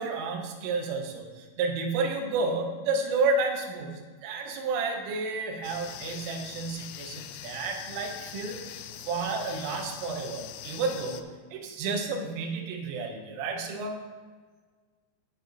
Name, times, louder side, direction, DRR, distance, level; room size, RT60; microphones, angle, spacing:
voice 1, 0.0-14.0, right 3 dB, 80° right, 3 dB, 3.6 m, -31 dB
sound 1, 5.6-11.2, left 11 dB, 85° left, 3.1 m, -42 dB
18.0 x 6.7 x 2.7 m, 1.5 s
omnidirectional pair, 5.7 m